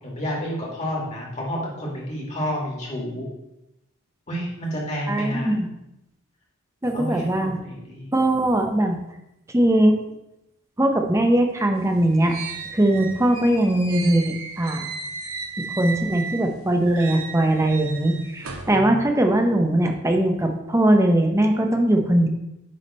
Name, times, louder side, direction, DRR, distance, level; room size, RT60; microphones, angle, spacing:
voice 1, 0.0-3.3 4.3-5.5 6.9-8.1 18.7-19.0, equal, 35° left, -3 dB, 2.1 m, -30 dB
voice 2, 5.1-5.7 6.8-7.6 8.1-9.0 9.5-10.0 10.8-12.3 12.7-14.8 15.6-22.3, right 1 dB, 15° right, 3 dB, 0.7 m, -20 dB
sound 1, 11.8-16.5 16.8-18.8, right 4 dB, 90° right, 0.9 m, -35 dB
9.3 x 3.6 x 4.2 m, 0.88 s
head